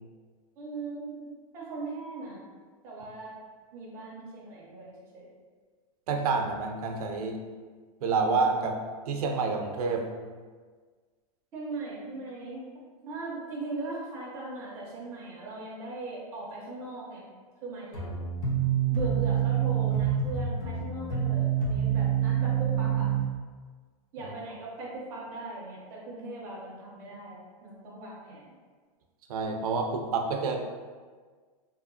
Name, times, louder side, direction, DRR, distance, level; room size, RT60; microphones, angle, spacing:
voice 1, 0.6-2.4 2.8-3.3 3.7-5.3 11.5-12.7 13.0-17.2 17.6-18.3 18.9-23.1 24.1-28.4, right 2 dB, 15° right, -6 dB, 0.4 m, -39 dB
voice 2, 6.1-7.4 8.0-10.1 24.2-24.3 29.3-30.6, right 4 dB, 85° right, 3 dB, 0.4 m, -28 dB
sound 1, 17.9-23.3, right 8 dB, 75° left, 1.0 m, -27 dB
2.7 x 2.3 x 2.6 m, 1.5 s
supercardioid pair, 175°, 19 cm